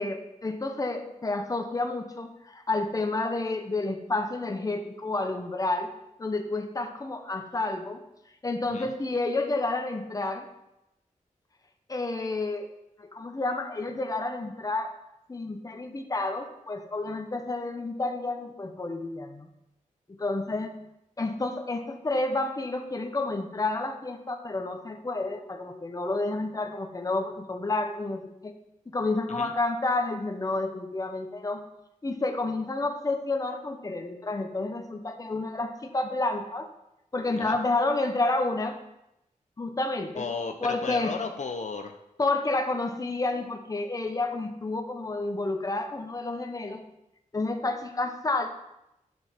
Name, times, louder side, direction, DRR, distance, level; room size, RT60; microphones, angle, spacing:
voice 1, 0.0-5.9 6.2-8.0 8.4-10.5 11.9-12.7 13.0-14.9 15.3-19.5 20.1-20.7 21.2-28.6 28.9-31.6 32.0-36.7 37.1-38.8 39.6-40.2 40.6-41.2 42.2-46.8 47.3-48.5, left 2 dB, 25° left, 5 dB, 1.0 m, -30 dB
voice 2, 40.2-41.9, left 4 dB, 60° left, 6 dB, 0.8 m, -34 dB
9.7 x 7.8 x 4.4 m, 0.87 s
wide cardioid pair, 125°, 14 cm